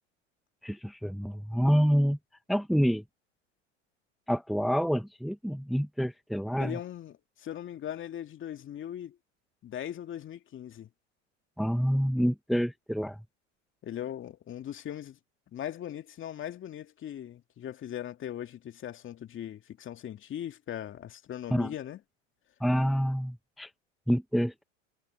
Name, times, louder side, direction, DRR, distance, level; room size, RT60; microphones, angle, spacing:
voice 1, 0.6-2.2 2.5-3.0 4.3-6.8 11.6-13.2 21.5-21.7 22.6-23.7 24.1-24.6, equal, ahead, 1.3 m, -27 dB
voice 2, 6.6-9.2 9.6-10.9 13.8-15.2 15.5-22.0, left 10 dB, 30° left, 2.3 m, -39 dB
hypercardioid pair, 100°, 38 cm